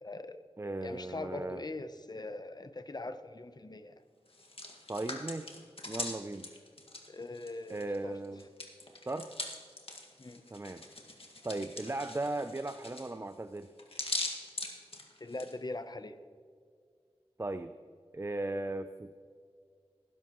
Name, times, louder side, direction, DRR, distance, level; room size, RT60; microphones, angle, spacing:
voice 1, 0.0-0.4 0.8-3.9 7.1-8.2 10.2-10.4 14.6-14.8 15.2-16.2, left 2 dB, 40° left, 11 dB, 0.7 m, -42 dB
voice 2, 0.6-1.6 4.9-5.5 5.9-6.5 7.7-8.4 9.1-9.3 10.5-10.8 11.4-13.7 17.4-17.7 18.1-19.1, right 2 dB, 25° right, 10 dB, 0.4 m, -37 dB
Hands, 4.3-8.0 8.2-15.5, left 2 dB, 65° left, 1.8 m, -41 dB
19.0 x 11.0 x 3.0 m, 2.1 s
wide cardioid pair, 65°, 11 cm